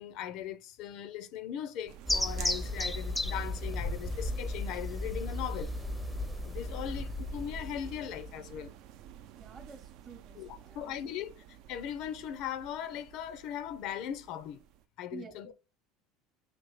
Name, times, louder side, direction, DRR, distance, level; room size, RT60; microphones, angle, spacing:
voice 1, 0.0-5.7 6.4-8.7 10.3-14.6 15.0-15.5, left 10 dB, 60° left, 0.4 m, -39 dB
sound 1, 1.9-14.8, right 10 dB, 60° right, 0.3 m, -50 dB
sound 2, 2.1-8.4, left 1 dB, 5° left, 0.5 m, -34 dB
voice 2, 9.3-10.9 15.1-15.5, right 5 dB, 25° right, 0.8 m, -49 dB
5.1 x 3.0 x 3.0 m
supercardioid pair, 120°, 0 cm